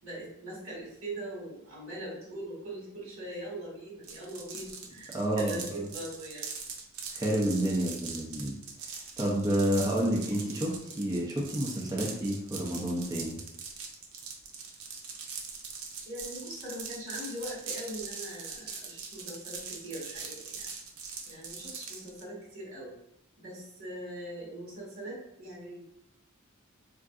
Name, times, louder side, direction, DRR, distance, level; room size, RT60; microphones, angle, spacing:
voice 1, 0.0-6.5 16.0-20.7 21.2-22.9 23.4-25.8, right 1 dB, 65° right, -5 dB, 1.4 m, -41 dB
sound 1, 4.0-22.2, right 5 dB, 90° right, 0.6 m, -41 dB
voice 2, 5.1-5.9 7.1-8.5 9.2-13.4, right 1 dB, 15° right, -3 dB, 0.5 m, -29 dB
3.6 x 2.5 x 2.4 m, 0.76 s
head